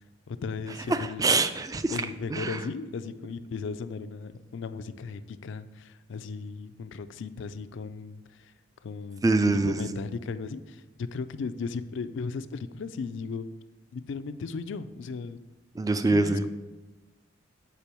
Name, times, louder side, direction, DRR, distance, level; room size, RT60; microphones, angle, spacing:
voice 1, 0.3-1.4 1.9-8.5 8.8-9.3 9.6-13.5 13.9-15.4 16.1-16.5, left 4 dB, 70° left, 12 dB, 0.4 m, -36 dB
voice 2, 0.9-2.0 2.3-2.6 9.2-10.0 15.8-16.4, right 2 dB, 20° right, 10 dB, 0.3 m, -25 dB
6.8 x 4.8 x 4.4 m, 1.1 s
head